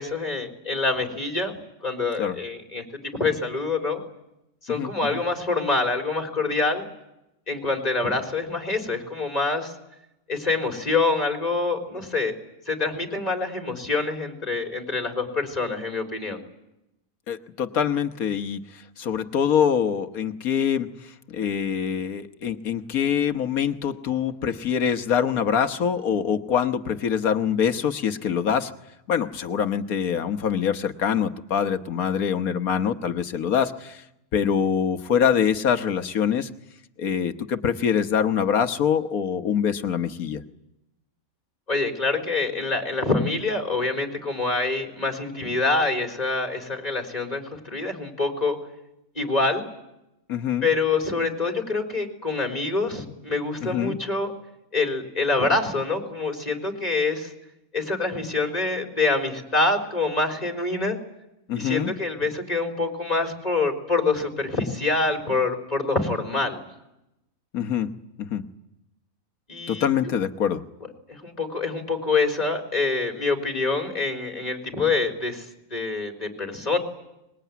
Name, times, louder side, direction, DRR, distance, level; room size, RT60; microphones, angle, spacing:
voice 1, 0.0-1.6 1.8-4.0 4.6-6.9 7.5-9.7 10.3-12.3 12.7-16.4 41.7-48.6 49.2-49.7 50.6-54.3 54.7-57.3 57.7-61.0 61.5-66.6 69.5-69.9 71.1-76.8, left 3 dB, 25° left, 3 dB, 3.9 m, -26 dB
voice 2, 4.7-5.2 17.3-18.6 19.0-20.9 21.3-28.7 29.1-34.0 34.3-36.5 37.0-40.4 50.3-50.7 53.6-54.0 61.5-61.9 67.5-67.9 68.2-68.4 69.7-70.6, left 8 dB, 75° left, 9 dB, 1.6 m, -24 dB
24.5 x 21.5 x 9.3 m, 0.89 s
omnidirectional pair, 1.5 m